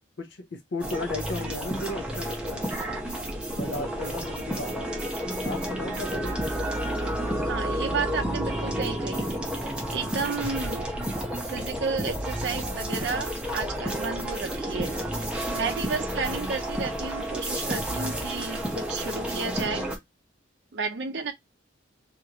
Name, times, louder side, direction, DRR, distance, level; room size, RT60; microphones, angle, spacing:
voice 1, 0.2-2.6 3.5-4.9 5.4-6.4, left 2 dB, 65° left, 0.5 m, -35 dB
sound 1, 0.8-20.0, equal, 5° right, 0.6 m, -31 dB
voice 2, 7.5-9.3 9.9-11.0 11.5-14.9 15.5-19.9 20.7-21.3, right 5 dB, 60° right, 0.5 m, -32 dB
3.0 x 2.4 x 2.8 m
head